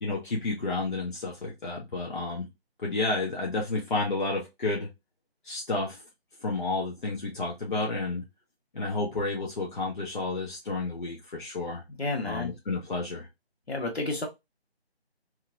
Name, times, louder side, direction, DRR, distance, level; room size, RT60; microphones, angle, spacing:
voice 1, 0.0-2.5 2.8-4.9 5.4-6.0 6.4-8.2 8.7-11.8 12.2-13.3, left 3 dB, 50° left, -3 dB, 0.9 m, -31 dB
voice 2, 12.0-12.5 13.7-14.3, left 2 dB, 70° left, 1 dB, 1.3 m, -30 dB
2.9 x 2.7 x 2.5 m, 0.22 s
figure-of-eight pair, 165°, 32 cm